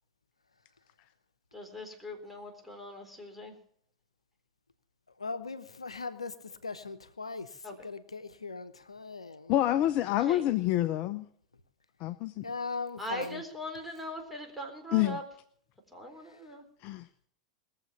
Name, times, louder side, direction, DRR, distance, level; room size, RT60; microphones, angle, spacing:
voice 1, 1.5-3.5 7.6-7.7 10.2-10.4 13.0-15.2 15.9-16.6, equal, ahead, 2 dB, 4.0 m, -41 dB
voice 2, 5.2-9.6 12.4-13.4 16.2-16.4, left 4 dB, 85° left, 11 dB, 0.8 m, -39 dB
voice 3, 9.5-11.2 12.0-12.4 14.9-15.2 16.8-17.1, left 13 dB, 45° left, 13 dB, 0.6 m, -27 dB
20.5 x 7.6 x 7.3 m, 0.62 s
figure-of-eight pair, 90°, 3 cm